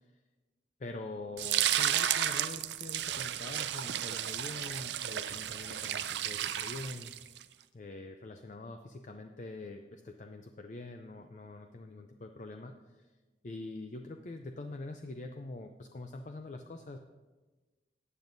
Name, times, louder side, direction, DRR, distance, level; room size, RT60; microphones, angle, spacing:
voice 1, 0.8-7.1 7.7-13.1 13.4-17.0, left 2 dB, 45° left, 5 dB, 0.5 m, -44 dB
sound 1, 1.4-7.4, right 11 dB, 80° right, 0.4 m, -33 dB
15.0 x 9.1 x 2.6 m, 1.2 s
head